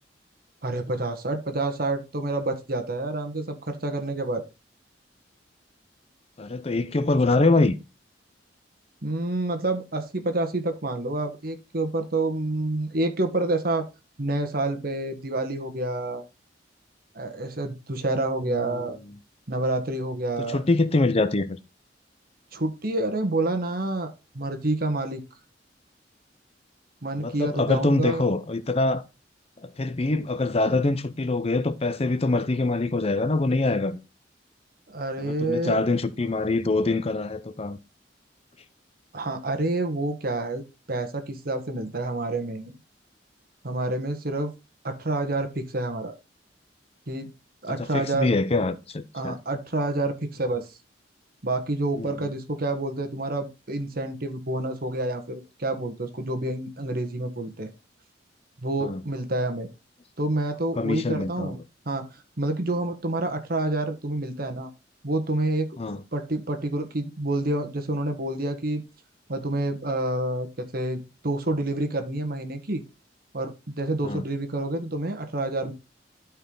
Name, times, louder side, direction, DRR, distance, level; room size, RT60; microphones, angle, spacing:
voice 1, 0.6-4.4 9.0-13.9 14.2-16.2 17.1-19.0 19.5-20.6 22.5-25.2 27.0-28.3 34.9-35.8 39.1-40.6 40.9-42.8 43.6-44.5 44.8-46.1 47.1-47.3 47.6-48.3 49.1-50.7 51.4-57.7 58.6-59.7 60.2-61.6 61.8-64.7 65.0-65.7 66.1-68.8 69.3-72.8 73.3-75.7, right 2 dB, 55° right, 1.4 m, -28 dB
voice 2, 6.4-7.8 18.5-18.8 20.5-21.6 27.2-29.0 29.6-34.0 35.2-37.8 47.8-49.4 51.9-52.3 58.8-59.0 60.8-61.5 65.8-66.0 74.0-74.2, left 2 dB, 35° left, 0.6 m, -24 dB
12.0 x 4.7 x 3.9 m
head